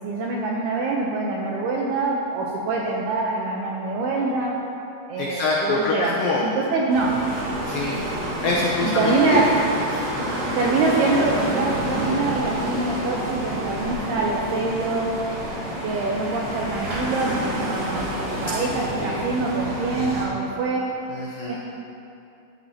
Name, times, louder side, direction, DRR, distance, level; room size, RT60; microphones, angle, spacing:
voice 1, 0.0-4.5 5.1-6.2 6.4-7.2 8.8-9.5 10.5-15.2 15.8-20.8 21.5-21.6, right 3 dB, 80° right, -3 dB, 2.3 m, -24 dB
voice 2, 5.2-6.4 7.6-8.1 8.4-9.5 19.0-19.2 21.1-21.6, left 3 dB, 85° left, -4 dB, 1.9 m, -25 dB
sound 1, 6.9-20.3, equal, 50° right, 2.1 m, -29 dB
13.5 x 13.0 x 2.9 m, 2.7 s
omnidirectional pair, 5.6 m